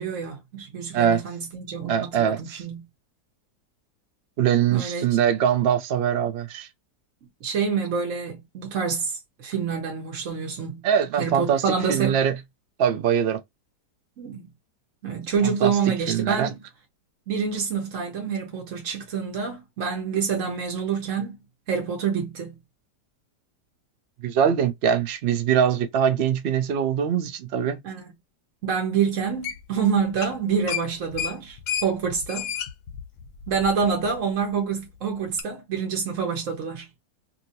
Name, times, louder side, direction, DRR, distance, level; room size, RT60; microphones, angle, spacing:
voice 1, 0.0-2.9 4.7-5.0 7.4-10.8 11.2-12.2 14.2-14.5 15.0-16.5 17.3-21.4 21.7-22.6 27.8-28.0 28.6-32.5 33.5-36.9, right 6 dB, 55° right, 1.1 m, -27 dB
voice 2, 1.9-2.6 4.4-6.7 10.8-11.6 11.9-12.3 12.8-13.4 15.4-15.7 16.1-16.5 24.2-27.8, right 8 dB, 75° right, 0.5 m, -22 dB
sound 1, 29.4-29.8 30.1-30.4 30.7-34.1 34.4-34.5 35.4-35.5, left 8 dB, 70° left, 0.9 m, -32 dB
2.8 x 2.7 x 2.7 m
omnidirectional pair, 1.8 m